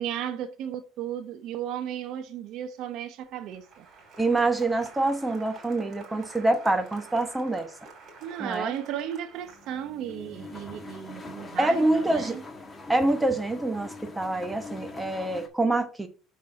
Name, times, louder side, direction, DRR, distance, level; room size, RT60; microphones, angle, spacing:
voice 1, 0.0-3.9 8.2-12.4, right 10 dB, 60° right, 0.8 m, -35 dB
Applause, 3.2-10.1, right 4 dB, 40° right, 3.0 m, -49 dB
voice 2, 4.2-7.7 8.4-8.7 11.6-12.4 12.9-16.1, right 2 dB, 10° right, 1.1 m, -26 dB
sound 1, 9.3-15.5, left 3 dB, 15° left, 1.5 m, -43 dB
6.3 x 4.6 x 5.6 m
cardioid pair, 135°, 0 cm